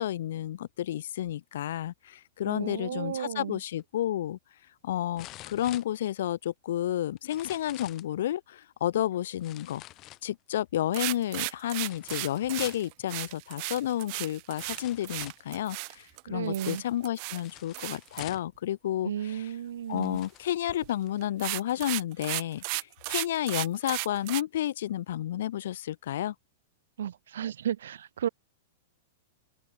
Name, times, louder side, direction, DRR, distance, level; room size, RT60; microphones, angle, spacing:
voice 1, 0.0-4.4 4.8-9.8 10.2-19.5 19.9-26.3, left 12 dB, 65° left, 1.8 m, -31 dB
voice 2, 2.5-3.6 16.3-16.8 19.0-20.2 27.0-28.3, right 10 dB, 85° right, 2.9 m, -33 dB
sound 1, 3.8-3.9 5.2-6.5 7.2-8.1 9.4-10.6 11.8-12.9 13.9-14.0 14.5-15.5 17.4-18.6 19.4-19.5 19.9-20.5 21.1-21.2, left 17 dB, 25° left, 7.4 m, -47 dB
sound 2, 10.9-16.2 16.5-17.4 17.7-18.2 20.7-20.9 21.2-24.4, right 40 dB or more, 35° right, 0.8 m, -35 dB
open air
supercardioid pair, 170°, 0 cm